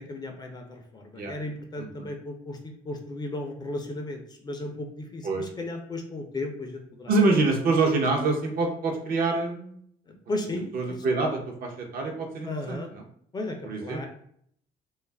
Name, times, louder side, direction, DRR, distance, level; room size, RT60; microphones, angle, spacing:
voice 1, 0.0-7.1 10.1-10.7 12.4-12.9 13.3-14.1, left 2 dB, 25° left, 3 dB, 0.4 m, -35 dB
voice 2, 7.1-9.8 10.7-13.0 13.6-14.1, right 3 dB, 60° right, 2 dB, 0.6 m, -26 dB
2.3 x 2.0 x 3.2 m, 0.65 s
cardioid pair, 110°, 17 cm